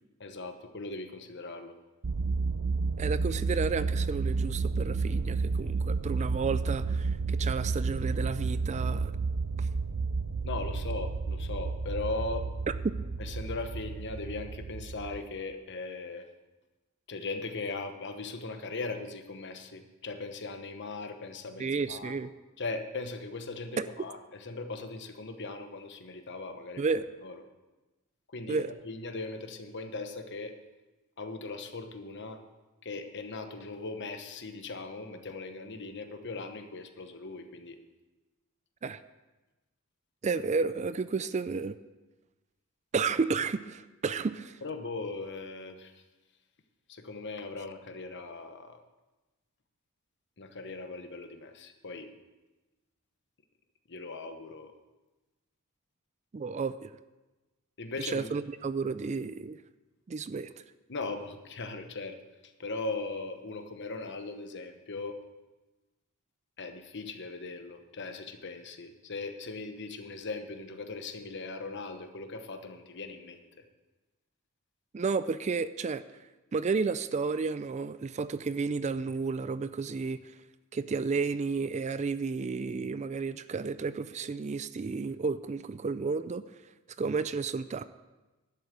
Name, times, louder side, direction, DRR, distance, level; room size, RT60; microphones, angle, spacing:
voice 1, 0.2-1.7 10.4-12.5 13.2-16.3 17.1-22.1 22.6-26.8 27.2-27.4 28.3-30.6 31.2-32.4 32.8-37.8 44.6-46.0 46.9-48.8 50.4-52.1 53.9-54.7 57.8-58.3 60.9-62.2 62.4-65.2 66.6-73.4, left 3 dB, 55° left, 7 dB, 1.1 m, -39 dB
sound 1, 2.0-15.2, right 4 dB, 85° right, 0.7 m, -31 dB
voice 2, 3.0-9.1 9.6-9.7 21.6-22.3 23.8-23.9 26.8-27.1 28.5-28.7 38.8-39.0 40.2-41.8 42.9-44.6 56.3-56.9 58.1-59.6 60.1-60.5 74.9-76.0 76.5-80.2 80.7-86.4 87.0-87.8, right 4 dB, 30° right, 14 dB, 0.4 m, -32 dB
11.5 x 8.1 x 6.8 m, 1.1 s
head